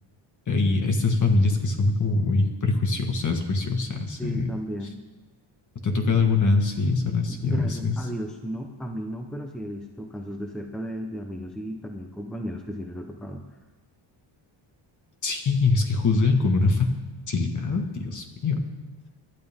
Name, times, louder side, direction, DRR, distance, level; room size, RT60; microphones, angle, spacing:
voice 1, 0.5-4.5 5.8-8.0 15.2-16.9 17.3-18.6, left 3 dB, 35° left, 4 dB, 1.9 m, -23 dB
voice 2, 4.2-5.0 7.3-13.4, equal, ahead, 3 dB, 0.9 m, -34 dB
24.5 x 12.0 x 3.7 m, 1.2 s
cardioid pair, 160°, 49 cm